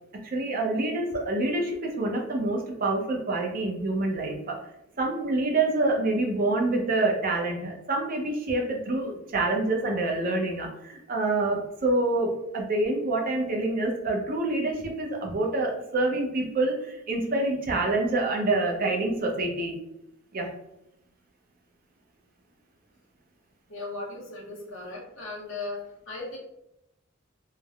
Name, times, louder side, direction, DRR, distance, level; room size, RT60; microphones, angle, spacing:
voice 1, 0.2-4.6 5.0-19.7 20.3-20.5, right 2 dB, 45° right, 0 dB, 0.5 m, -27 dB
voice 2, 23.7-26.4, left 2 dB, 65° left, -3 dB, 0.9 m, -37 dB
3.2 x 2.0 x 2.3 m, 0.84 s
head